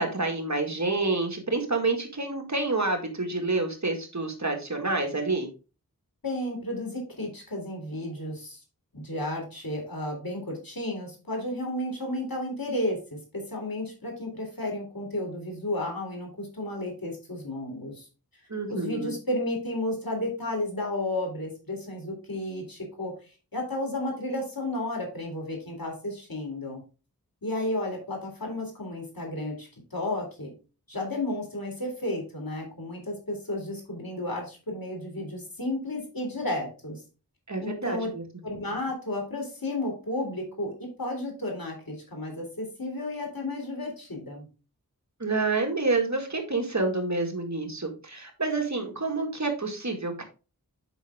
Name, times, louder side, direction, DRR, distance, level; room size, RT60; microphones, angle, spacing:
voice 1, 0.0-5.5 18.5-19.1 37.5-38.2 45.2-50.2, right 3 dB, 50° right, 4 dB, 2.0 m, -28 dB
voice 2, 6.2-8.6 8.9-18.1 18.7-23.1 23.5-26.8 27.4-30.5 30.9-37.0 37.6-38.1 38.4-44.5, left 1 dB, 70° left, 0 dB, 3.7 m, -32 dB
8.1 x 5.9 x 3.6 m, 0.32 s
wide cardioid pair, 50°, 36 cm